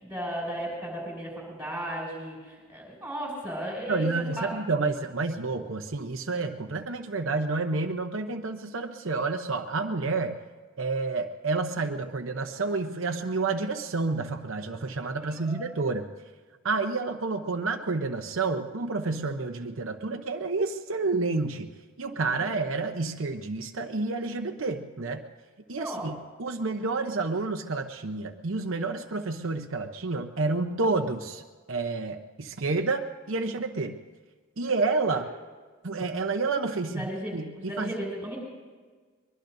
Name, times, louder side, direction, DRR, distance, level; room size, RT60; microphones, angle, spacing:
voice 1, 0.0-4.1 4.4-4.5 15.2-15.8 22.3-22.5 25.8-26.1 35.1-35.2 36.9-38.4, right 1 dB, 5° right, -4 dB, 6.4 m, -35 dB
voice 2, 3.9-10.4 10.8-16.1 16.6-21.7 22.0-25.3 25.7-31.4 31.7-33.9 34.6-35.2 35.8-38.0, right 3 dB, 70° right, 5 dB, 0.8 m, -29 dB
23.5 x 22.0 x 2.7 m, 1.5 s
head